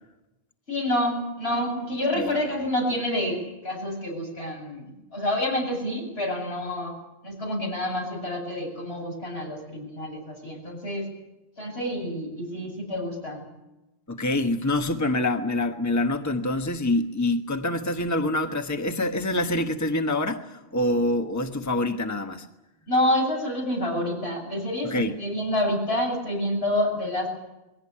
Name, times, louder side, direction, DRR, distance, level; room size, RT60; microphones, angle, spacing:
voice 1, 0.7-6.9 7.2-11.1 11.6-13.5 22.9-27.4, left 1 dB, 85° left, 0 dB, 8.5 m, -28 dB
voice 2, 14.1-22.5 24.8-25.1, left 1 dB, 15° left, 5 dB, 1.3 m, -26 dB
22.0 x 17.5 x 9.9 m, 0.97 s
omnidirectional pair, 1.0 m